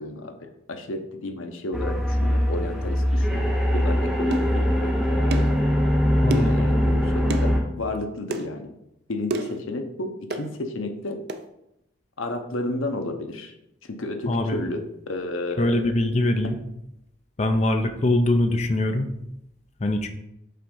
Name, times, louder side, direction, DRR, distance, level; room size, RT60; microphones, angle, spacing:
voice 1, 0.0-5.5 6.3-8.7 9.1-11.2 12.2-13.5 14.0-15.8, left 2 dB, 85° left, 6 dB, 0.8 m, -32 dB
sound 1, 1.7-7.6, equal, ahead, 0.8 m, -22 dB
sound 2, 4.3-4.5 5.3-5.6 6.3-6.6 7.3-7.5 8.3-8.5 9.3-9.6 10.3-10.5 11.3-11.4, right 1 dB, 50° right, 0.4 m, -29 dB
voice 2, 6.2-6.7 14.3-14.6 15.6-16.6 17.4-19.1 19.8-20.1, left 1 dB, 35° left, 6 dB, 0.5 m, -23 dB
5.6 x 3.7 x 5.3 m, 0.84 s
head